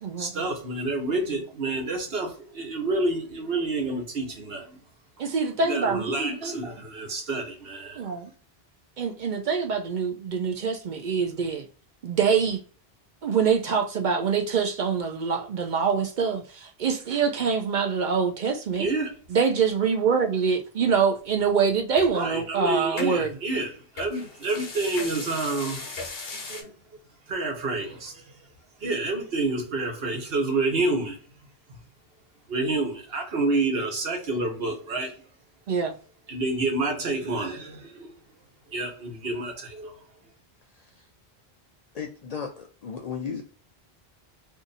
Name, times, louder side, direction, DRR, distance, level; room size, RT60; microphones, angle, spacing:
voice 1, 0.2-4.8 5.6-8.0 18.8-19.1 22.1-25.9 26.5-26.7 27.3-28.2 28.8-31.2 32.5-35.1 36.3-38.1 38.7-40.0, right 2 dB, 75° right, 1.2 m, -28 dB
voice 2, 5.2-6.1 8.0-8.3 9.0-11.6 12.0-12.6 13.2-18.9 19.3-23.3 35.7-35.9, right 6 dB, 60° right, 0.6 m, -25 dB
sound 1, 22.0-22.1 23.0-23.1 24.0-26.6, left 3 dB, 70° left, 1.0 m, -37 dB
voice 3, 40.7-41.1 41.9-43.6, left 6 dB, 55° left, 0.5 m, -36 dB
2.6 x 2.5 x 3.9 m
omnidirectional pair, 1.0 m